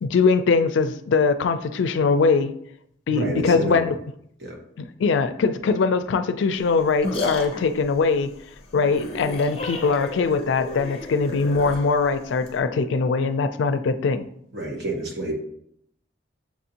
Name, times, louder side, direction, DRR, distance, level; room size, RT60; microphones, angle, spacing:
voice 1, 0.0-2.5 3.1-4.0 5.0-8.3 8.7-14.3, left 4 dB, 85° left, 11 dB, 0.4 m, -21 dB
voice 2, 3.1-3.9 4.4-4.6 14.5-15.3, right 2 dB, 60° right, -1 dB, 1.2 m, -29 dB
sound 1, 6.5-12.6, left 2 dB, 30° left, 0.6 m, -33 dB
7.2 x 2.6 x 2.8 m, 0.70 s
head